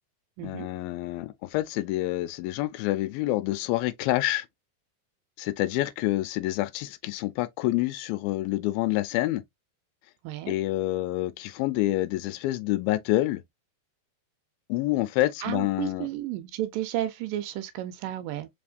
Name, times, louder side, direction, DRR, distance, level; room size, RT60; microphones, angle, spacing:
voice 1, 0.4-4.5 5.4-9.4 10.5-13.4 14.7-16.1, left 16 dB, 85° left, 2.4 m, -27 dB
voice 2, 10.2-10.6 15.4-18.5, right 13 dB, 80° right, 2.2 m, -32 dB
4.9 x 3.5 x 2.4 m
omnidirectional pair, 4.2 m